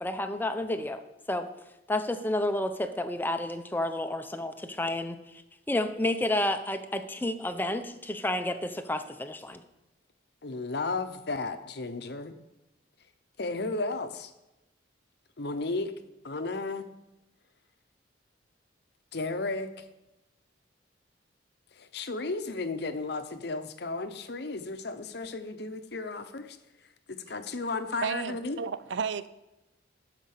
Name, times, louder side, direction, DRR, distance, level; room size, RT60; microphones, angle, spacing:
voice 1, 0.0-1.0 1.3-1.5 1.9-5.2 5.7-9.6, left 1 dB, 10° left, 8 dB, 0.6 m, -30 dB
voice 2, 10.4-12.4 13.4-14.3 15.4-15.9 16.2-16.9 19.1-19.8 21.8-26.6 27.1-28.6, left 3 dB, 60° left, 9 dB, 0.8 m, -34 dB
voice 3, 28.0-29.3, right 6 dB, 75° right, 14 dB, 0.4 m, -32 dB
12.5 x 5.1 x 6.6 m, 0.96 s
head